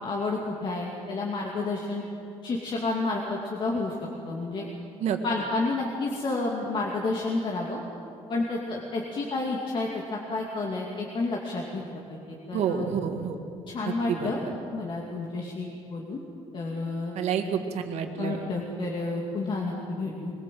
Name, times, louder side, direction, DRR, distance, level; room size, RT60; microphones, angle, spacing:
voice 1, 0.0-2.0 2.4-4.0 4.3-4.7 5.2-7.8 8.3-11.8 12.1-12.2 12.5-12.9 13.7-14.4 14.7-16.2 16.5-17.2 18.2-20.3, left 3 dB, 45° left, -2 dB, 2.5 m, -30 dB
voice 2, 12.5-13.4 13.9-14.6 17.1-18.4, right 7 dB, 70° right, 5 dB, 1.9 m, -29 dB
22.0 x 19.0 x 7.7 m, 2.8 s
cardioid pair, 135°, 11 cm